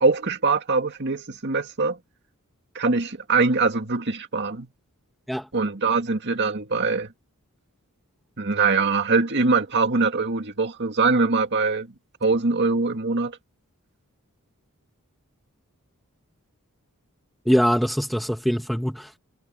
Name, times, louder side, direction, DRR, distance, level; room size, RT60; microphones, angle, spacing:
voice 1, 0.0-2.0 2.8-4.7 5.5-7.1 8.4-11.9 12.2-13.4, right 4 dB, 55° right, 2.1 m, -22 dB
voice 2, 17.5-19.2, equal, ahead, 1.8 m, -23 dB
head